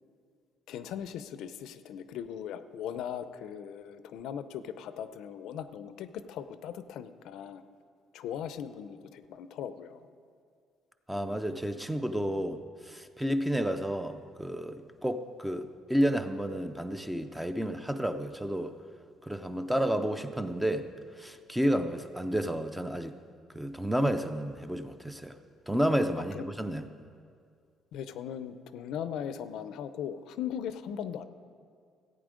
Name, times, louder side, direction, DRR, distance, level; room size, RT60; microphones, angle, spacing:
voice 1, 0.7-7.6 8.1-10.1 21.6-21.7 26.3-26.5 27.9-31.2, left 9 dB, 70° left, 12 dB, 0.5 m, -39 dB
voice 2, 11.1-18.8 19.2-20.9 21.2-23.1 23.5-25.4 25.7-26.8, equal, 5° right, 9 dB, 0.4 m, -31 dB
15.0 x 8.8 x 5.0 m, 2.3 s
cardioid pair, 175°, 0 cm